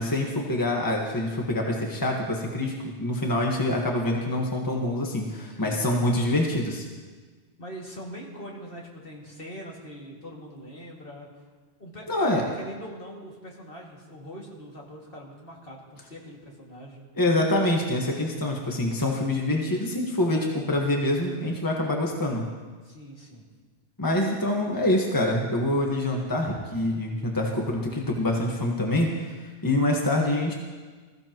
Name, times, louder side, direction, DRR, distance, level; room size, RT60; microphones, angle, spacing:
voice 1, 0.0-6.8 12.1-12.4 17.2-22.4 24.0-29.4 29.6-30.5, left 1 dB, 20° left, -1 dB, 1.4 m, -25 dB
voice 2, 5.3-6.1 7.6-11.4 11.8-17.0 22.8-23.4, equal, 55° left, -3 dB, 2.5 m, -42 dB
20.5 x 15.0 x 3.0 m, 1.4 s
omnidirectional pair, 1.1 m